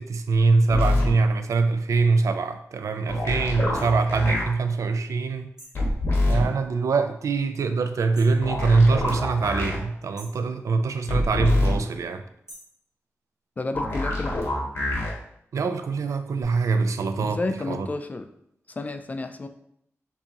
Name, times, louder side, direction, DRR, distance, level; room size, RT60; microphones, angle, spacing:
voice 1, 0.0-5.5 6.2-12.2 15.5-17.4 17.7-17.9, right 4 dB, 85° right, 9 dB, 0.4 m, -23 dB
sound 1, 0.7-1.1 3.1-4.4 5.7-6.4 8.4-9.8 11.1-11.8 13.7-15.1 16.4-16.5, left 2 dB, 50° left, 1.3 m, -25 dB
sound 2, 3.7-3.9 5.6-5.9 8.1-8.4 10.2-10.5 12.5-12.8, right 1 dB, 10° right, 1.3 m, -47 dB
voice 2, 13.6-14.5 17.2-18.3 18.7-19.5, left 2 dB, 30° left, 7 dB, 0.3 m, -31 dB
6.7 x 2.8 x 2.9 m, 0.73 s
wide cardioid pair, 160°, 5 cm